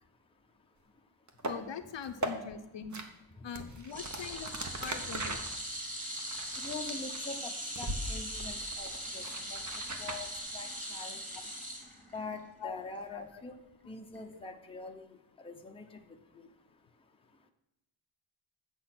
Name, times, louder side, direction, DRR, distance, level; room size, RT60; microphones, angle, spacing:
sound 1, 1.3-1.6 2.0-2.3 2.9-3.0 3.5-7.4 7.8-8.0 8.3-10.2, right 2 dB, 35° right, 1.0 m, -39 dB
voice 1, 1.4-3.0 3.4-5.4 12.6-12.8 13.1-13.4, left 7 dB, 60° left, 9 dB, 0.7 m, -42 dB
sound 2, 3.9-12.4 12.7-13.0 14.2-14.3, equal, 15° right, 2.3 m, -40 dB
voice 2, 6.6-8.9 9.1-9.6 10.0-11.2 12.1-13.6 13.9-15.1 15.4-16.0, left 3 dB, 10° left, 3 dB, 0.7 m, -43 dB
8.5 x 6.9 x 5.9 m, 0.88 s
wide cardioid pair, 165°, 50 cm